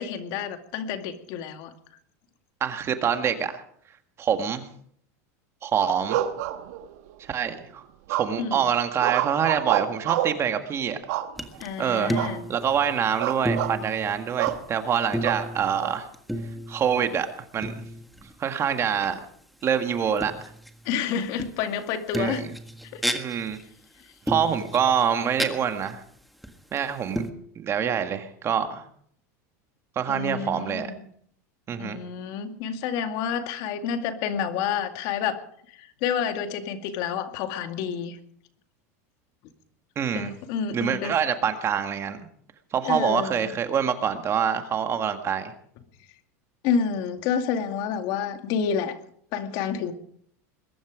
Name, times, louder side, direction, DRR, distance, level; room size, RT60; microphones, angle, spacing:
voice 1, 0.0-1.7 8.4-8.7 11.6-12.4 20.8-22.5 22.9-23.0 30.1-31.0 31.8-35.4 35.7-38.2 40.1-41.2 42.8-43.5 46.6-49.0 49.3-49.9, left 7 dB, 55° left, 7 dB, 2.2 m, -29 dB
voice 2, 2.6-3.6 4.2-4.6 5.6-6.2 7.2-7.8 8.1-11.0 11.8-12.1 12.5-16.1 16.7-17.3 17.5-17.7 18.4-19.2 19.6-20.3 22.2-22.5 23.1-23.6 24.3-26.0 26.7-27.3 27.6-28.8 30.0-30.9 31.7-32.0 40.0-40.3 40.7-42.2 42.7-45.5, right 8 dB, 30° right, 7 dB, 1.8 m, -25 dB
sound 1, 6.1-7.1 8.1-8.6 9.0-10.4 11.1-11.7 12.1-12.4 12.7-12.9 13.2-13.8 14.4-14.6 15.2-16.0, right 13 dB, 70° right, 1.3 m, -28 dB
sound 2, 11.4-11.7 12.0-13.2 13.4-14.7 15.0-17.1 17.6-18.3 19.0-19.1 20.2-20.9 21.4-21.8 22.1-23.6 24.3-25.5 25.9-26.0 26.4-26.8 27.2-27.3, equal, ahead, 1.6 m, -32 dB
21.5 x 11.5 x 5.1 m, 0.64 s
supercardioid pair, 130°, 9 cm